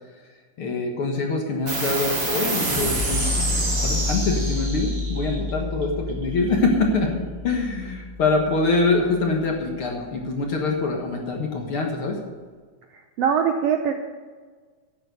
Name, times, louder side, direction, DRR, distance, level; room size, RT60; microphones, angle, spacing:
voice 1, 0.6-3.5 3.8-7.1 7.4-12.2, left 3 dB, 50° left, 1 dB, 2.0 m, -24 dB
sound 1, 1.7-8.6, equal, 40° right, 4.6 m, -27 dB
voice 2, 13.2-13.9, right 7 dB, 75° right, 5 dB, 1.5 m, -21 dB
11.0 x 8.9 x 6.7 m, 1.5 s
omnidirectional pair, 3.6 m